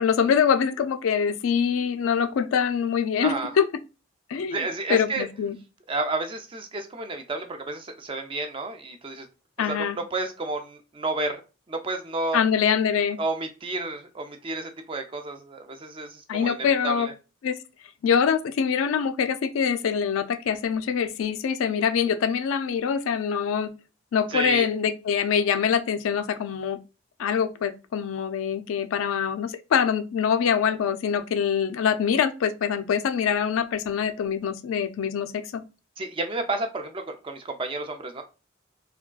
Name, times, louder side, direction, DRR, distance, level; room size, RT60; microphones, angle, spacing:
voice 1, 0.0-3.6 4.3-4.6 4.9-5.6 9.6-10.0 12.3-13.2 16.3-17.1 17.4-17.6 18.0-23.7 24.1-26.8 27.2-35.6, left 7 dB, 90° left, 0.3 m, -24 dB
voice 2, 4.5-5.3 5.9-9.3 9.6-11.4 11.7-12.4 13.2-17.1 24.3-24.7 36.0-38.2, right 2 dB, 25° right, 0.4 m, -31 dB
3.5 x 2.2 x 2.3 m
head